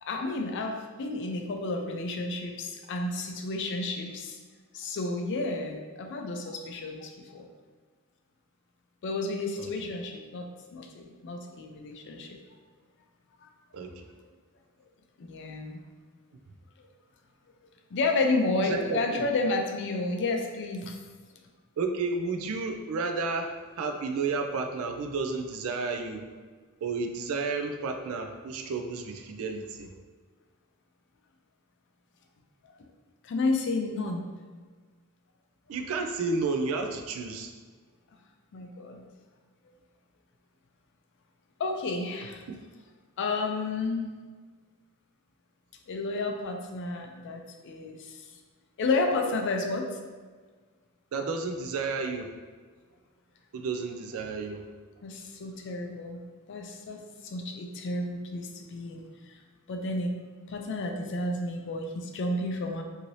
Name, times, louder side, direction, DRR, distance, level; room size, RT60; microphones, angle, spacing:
voice 1, 0.0-4.4 4.7-7.5 9.0-12.4 13.4-13.5 15.2-15.8 17.9-21.0 33.2-34.3 38.5-39.0 41.6-42.4 43.2-44.1 45.9-48.2 48.8-49.9 55.0-56.2 56.5-59.3 59.7-60.1 60.5-62.8, left 2 dB, 55° left, 3 dB, 0.4 m, -31 dB
voice 2, 13.7-14.1 18.6-19.3 21.8-26.3 26.8-29.9 35.7-37.5 42.5-42.6 51.1-52.3 53.5-54.6, right 4 dB, 65° right, 5 dB, 0.4 m, -32 dB
2.7 x 2.6 x 3.1 m, 1.5 s
head